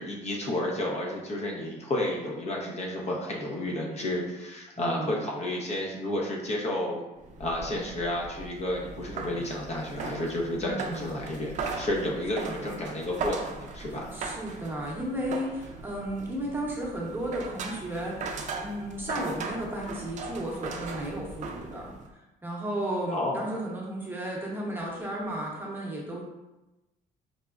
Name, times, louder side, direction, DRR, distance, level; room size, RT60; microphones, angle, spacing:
voice 1, 0.0-7.0 7.4-14.1 23.1-23.4, left 1 dB, 40° left, -1 dB, 0.6 m, -31 dB
voice 2, 4.8-5.2 10.6-11.1 12.5-12.8 13.9-21.9 22.4-26.2, right 1 dB, 10° right, -3 dB, 0.8 m, -34 dB
sound 1, 7.2-22.1, right 4 dB, 45° right, 0.4 m, -39 dB
4.9 x 2.0 x 2.3 m, 1.0 s
cardioid pair, 110°, 17 cm